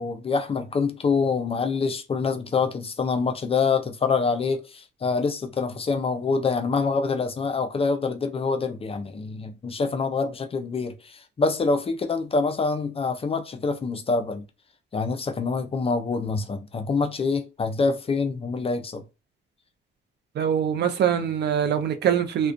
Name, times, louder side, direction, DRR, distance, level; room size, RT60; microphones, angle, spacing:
voice 1, 0.0-14.4 14.9-19.0, left 4 dB, 30° left, 0.4 m, -26 dB
voice 2, 20.3-22.5, right 8 dB, 60° right, 0.5 m, -23 dB
2.4 x 2.1 x 2.4 m
cardioid pair, 90°, 20 cm